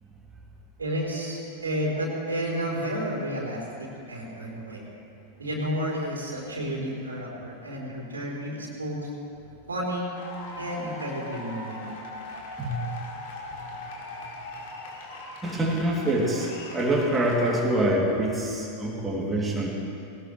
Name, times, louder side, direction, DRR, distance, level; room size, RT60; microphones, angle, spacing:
voice 1, 0.8-4.8 5.4-9.1 9.7-10.1 10.6-11.9, equal, 75° right, -3 dB, 3.5 m, -31 dB
sound 1, 10.1-17.7, left 2 dB, 55° left, 2.6 m, -40 dB
voice 2, 15.4-19.7, right 1 dB, 15° right, -3 dB, 2.7 m, -25 dB
20.0 x 18.0 x 3.2 m, 2.7 s
figure-of-eight pair, 90°, 0 cm